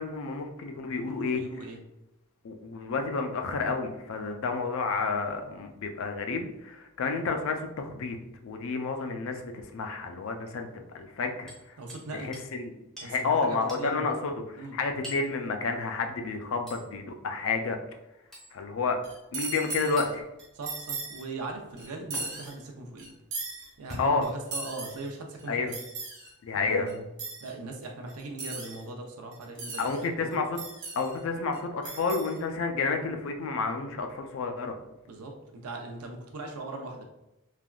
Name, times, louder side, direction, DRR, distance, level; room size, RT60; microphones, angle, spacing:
voice 1, 0.0-1.4 2.4-8.2 8.4-11.8 12.1-17.8 18.5-19.0 19.3-20.3 24.0-24.3 25.5-25.7 26.4-26.9 29.8-30.6 31.0-34.8, left 4 dB, 60° left, 5 dB, 0.4 m, -30 dB
voice 2, 1.0-1.8 11.8-12.3 13.0-14.1 14.6-14.8 20.5-23.1 23.8-25.7 26.5-27.0 27.4-29.9 30.2-30.4 35.1-37.0, right 2 dB, 85° right, 2 dB, 0.5 m, -40 dB
Hammer, 11.5-12.1 12.3-12.5 13.0-13.1 13.7-13.9 15.0-15.3 16.7-16.9 18.3-18.5 20.0-20.1 22.1-22.2 23.7-24.5 25.3-25.4 26.7-26.9 27.8-28.0 29.5-29.6, equal, ahead, 0.7 m, -44 dB
sound 1, 19.0-20.1 20.4-21.2 21.8-22.5 23.0-23.7 24.2-25.1 25.4-26.3 26.9-27.0 27.2-27.5 28.1-28.8 29.3-30.0 30.3-31.2 31.5-31.6 31.8-32.4, right 3 dB, 55° right, 0.7 m, -38 dB
3.3 x 2.4 x 2.2 m, 0.92 s
head